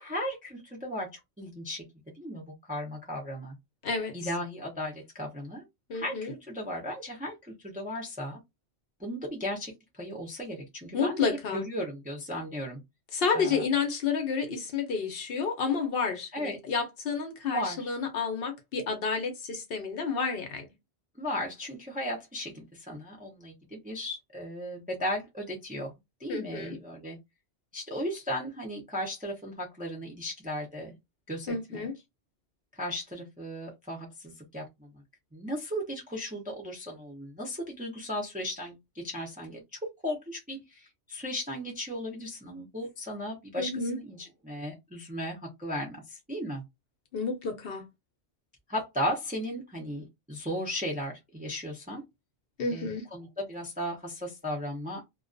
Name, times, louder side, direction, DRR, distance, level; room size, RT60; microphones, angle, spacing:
voice 1, 0.0-1.8 2.1-3.6 4.1-5.6 5.9-7.3 7.6-8.4 9.0-12.8 13.3-13.6 16.3-16.6 17.5-17.9 21.2-25.9 26.2-27.2 27.7-30.9 31.3-31.9 32.7-35.0 35.3-46.6 48.7-52.0 52.7-55.0, equal, 10° right, 0.4 m, -36 dB
voice 2, 3.8-4.1 5.9-6.3 10.9-11.6 13.1-20.7 26.3-26.8 31.5-31.9 43.6-44.0 47.1-47.8 52.6-53.1, left 5 dB, 60° left, 0.8 m, -30 dB
2.3 x 2.2 x 2.5 m
omnidirectional pair, 1.2 m